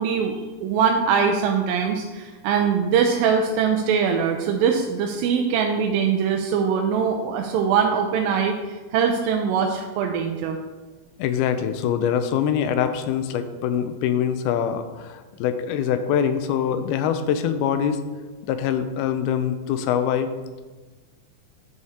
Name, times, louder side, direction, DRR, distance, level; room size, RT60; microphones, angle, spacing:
voice 1, 0.0-10.6, right 6 dB, 80° right, 3 dB, 2.2 m, -22 dB
voice 2, 11.2-18.0 18.4-20.3, left 8 dB, 85° left, 9 dB, 2.5 m, -24 dB
10.5 x 4.8 x 4.2 m, 1.3 s
omnidirectional pair, 4.4 m